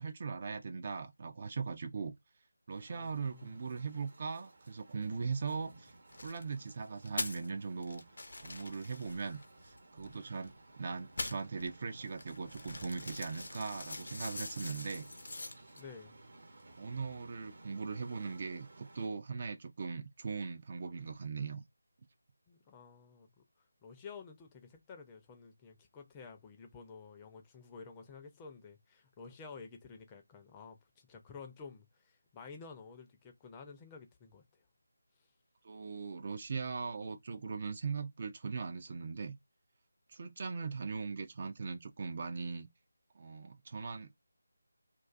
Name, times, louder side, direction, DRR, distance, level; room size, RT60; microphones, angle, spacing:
voice 1, 0.0-2.1 2.7-5.9 6.2-8.0 8.4-15.1 16.8-21.6 35.6-39.4 40.1-42.7 43.1-44.2, right 5 dB, 40° right, 0.4 m, -40 dB
sound 1, 2.7-19.1, right 2 dB, 55° right, 0.9 m, -58 dB
voice 2, 2.9-3.6 15.8-16.2 22.5-23.4 23.8-34.6 35.2-35.3, left 5 dB, 15° left, 0.5 m, -52 dB
sound 2, 6.1-6.4 7.0-7.5 7.8-10.6 11.0-15.8, left 2 dB, 60° left, 0.5 m, -44 dB
2.5 x 2.3 x 2.4 m
figure-of-eight pair, 160°, 0 cm